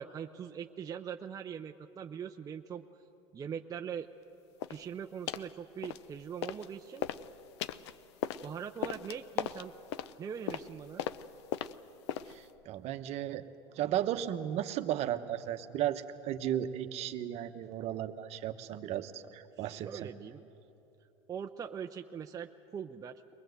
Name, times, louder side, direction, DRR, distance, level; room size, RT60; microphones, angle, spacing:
voice 1, 0.0-2.8 3.3-4.1 4.7-7.0 8.4-9.7 10.2-11.1 19.6-20.4 21.3-23.3, right 7 dB, 25° right, 5 dB, 0.6 m, -42 dB
sound 1, 4.6-4.8 5.3-5.5 5.8-6.7 7.0-12.5, left 11 dB, 85° left, 0.6 m, -38 dB
voice 2, 12.3-13.5 13.8-20.1, right 11 dB, 50° right, 9 dB, 1.0 m, -35 dB
22.5 x 19.5 x 8.0 m, 2.9 s
supercardioid pair, 110°, 14 cm